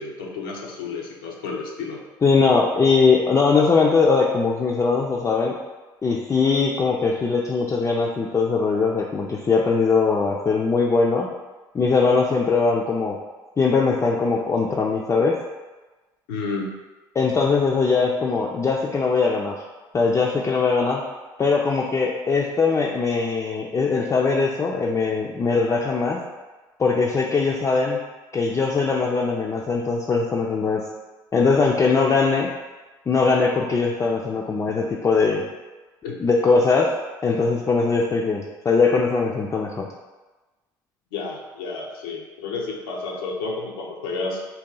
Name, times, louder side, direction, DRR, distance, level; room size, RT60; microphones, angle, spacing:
voice 1, 0.0-2.0 16.3-16.8 36.0-36.2 41.1-44.5, left 3 dB, 85° left, -1 dB, 0.5 m, -31 dB
voice 2, 2.2-5.5 6.0-11.3 11.7-13.2 13.6-15.4 17.2-19.6 19.9-21.0 21.4-26.2 26.8-28.0 28.3-30.8 31.3-32.5 33.1-35.4 36.2-36.9 37.2-39.9, left 4 dB, 25° left, -2 dB, 0.4 m, -21 dB
2.8 x 2.2 x 3.7 m, 1.2 s
hypercardioid pair, 65°, 11 cm